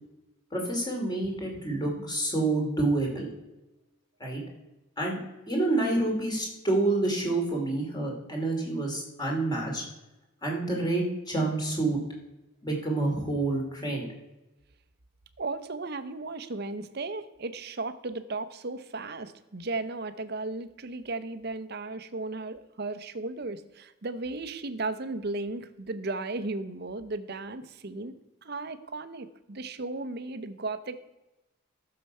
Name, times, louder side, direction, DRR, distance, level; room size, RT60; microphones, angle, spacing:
voice 1, 0.5-3.3 4.2-4.4 5.0-5.2 5.5-9.8 10.4-12.0 12.6-14.1, right 2 dB, 20° left, -1 dB, 2.7 m, -28 dB
voice 2, 15.4-28.1 28.4-31.1, right 3 dB, 50° right, 11 dB, 0.7 m, -35 dB
14.0 x 6.8 x 5.5 m, 1.0 s
head